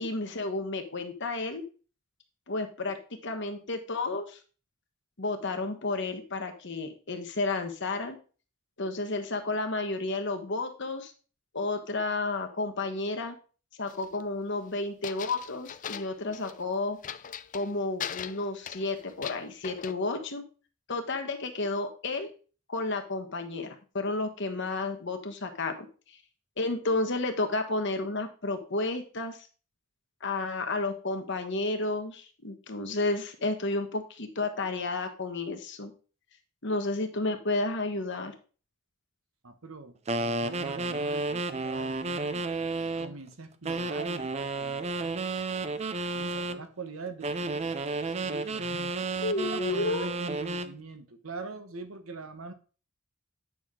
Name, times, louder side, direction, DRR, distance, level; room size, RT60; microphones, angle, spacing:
voice 1, 0.0-1.6 2.5-3.0 3.2-4.4 5.2-8.2 8.8-11.1 11.5-13.3 13.8-17.0 17.5-20.4 20.9-22.3 22.7-25.7 26.1-26.2 26.6-29.5 30.2-35.9 36.6-38.3 49.2-50.1, left 2 dB, 55° left, 6 dB, 1.3 m, -31 dB
sound 1, 13.9-14.2 15.0-16.6 17.0-17.7 18.0-19.9, left 8 dB, 35° left, 0.4 m, -39 dB
voice 2, 39.4-42.5 43.0-45.2 46.1-47.7 48.2-52.5, right 3 dB, 75° right, 8 dB, 1.2 m, -43 dB
sound 2, 40.1-43.1 43.6-46.6 47.2-50.7, right 3 dB, 30° right, 0.5 m, -32 dB
9.2 x 6.1 x 3.8 m, 0.36 s
head